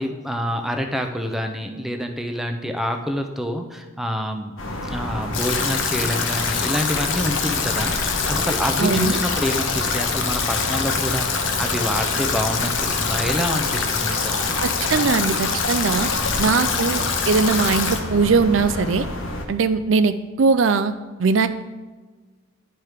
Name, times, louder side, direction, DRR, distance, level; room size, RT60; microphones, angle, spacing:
voice 1, 0.0-4.6 4.8-14.6 16.0-16.4, equal, ahead, 4 dB, 0.6 m, -27 dB
sound 1, 4.6-19.4, left 1 dB, 90° left, 1.3 m, -30 dB
Stream / Drip / Trickle dribble, 5.3-18.0, left 5 dB, 70° left, 0.9 m, -24 dB
voice 2, 8.8-9.2 14.6-16.1 16.4-19.1 19.5-20.9 21.2-21.5, right 4 dB, 70° right, 11 dB, 0.5 m, -20 dB
10.5 x 4.7 x 5.0 m, 1.3 s
head